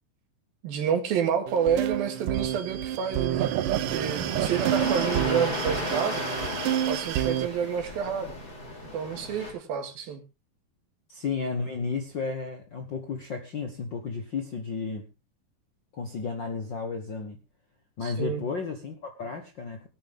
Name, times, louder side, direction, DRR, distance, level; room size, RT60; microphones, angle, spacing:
voice 1, 0.6-3.5 3.9-6.2 6.9-8.3 8.9-10.2 18.0-18.4, right 7 dB, 90° right, 3.8 m, -29 dB
sound 1, 1.5-7.5, right 11 dB, 75° right, 2.3 m, -28 dB
sound 2, 3.9-9.5, left 2 dB, 35° left, 4.6 m, -35 dB
voice 2, 11.1-15.1 15.9-17.4 18.0-19.9, left 4 dB, 65° left, 1.1 m, -33 dB
19.0 x 9.3 x 3.5 m
omnidirectional pair, 4.1 m